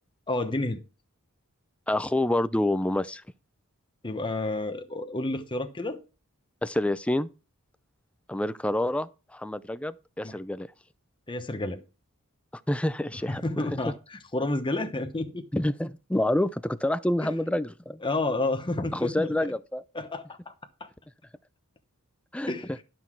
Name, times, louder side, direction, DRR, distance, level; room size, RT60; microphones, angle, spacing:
voice 1, 0.3-0.8 4.0-6.0 10.2-10.4 11.3-11.8 13.3-15.5 17.2-17.3 18.0-19.5 19.9-20.5 20.8-20.9 22.5-22.7, left 2 dB, 20° left, 1.0 m, -30 dB
voice 2, 1.9-3.2 6.6-7.3 8.3-10.7 12.7-13.6 15.5-18.0 18.9-19.8 22.3-22.5, left 1 dB, 5° left, 0.4 m, -27 dB
11.5 x 6.1 x 4.5 m
head